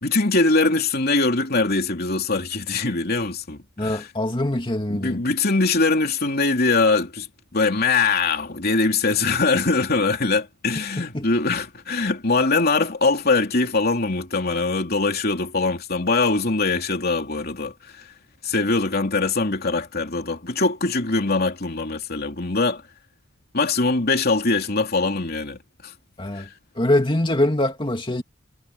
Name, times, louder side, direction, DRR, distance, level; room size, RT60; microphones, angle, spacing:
voice 1, 0.0-4.1 4.9-7.3 7.5-18.1 18.4-22.8 23.5-25.9 26.3-26.5, left 3 dB, 45° left, 3.2 m, -22 dB
voice 2, 3.8-5.2 11.0-11.3 26.2-26.5 26.8-28.2, left 1 dB, 25° left, 2.6 m, -23 dB
head